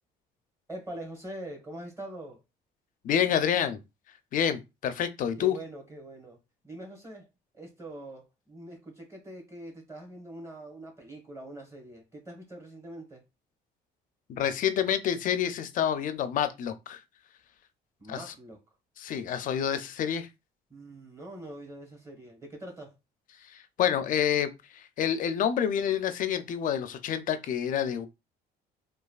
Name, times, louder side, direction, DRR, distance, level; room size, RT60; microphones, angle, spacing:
voice 1, 0.7-2.4 5.4-6.4 6.6-7.3 7.5-13.2 18.0-18.6 20.7-22.9, right 1 dB, 15° right, 1.3 m, -43 dB
voice 2, 3.0-3.8 4.3-5.6 14.3-17.0 18.1-18.2 19.0-20.3 23.4-28.1, left 9 dB, 50° left, 0.4 m, -28 dB
3.1 x 2.3 x 2.3 m
cardioid pair, 110°, 17 cm